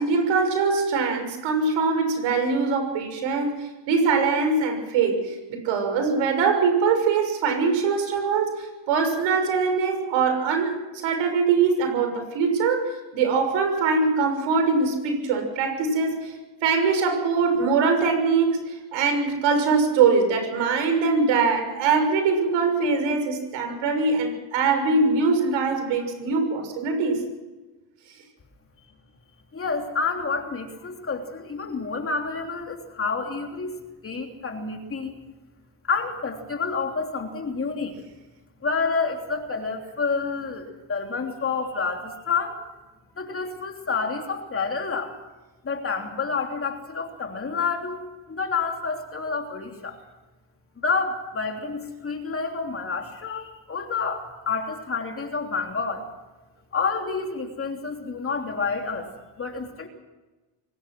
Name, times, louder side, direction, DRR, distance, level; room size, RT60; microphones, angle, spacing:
voice 1, 0.0-16.3 16.6-27.2, right 4 dB, 80° right, 5 dB, 6.6 m, -22 dB
voice 2, 29.5-33.8 34.0-35.2 35.9-37.9 38.6-42.6 43.2-45.1 45.6-50.0 50.8-56.1 56.7-59.1 59.4-59.9, left 4 dB, 30° left, 3 dB, 3.2 m, -29 dB
24.0 x 19.0 x 6.2 m, 1.2 s
cardioid pair, 125°, 46 cm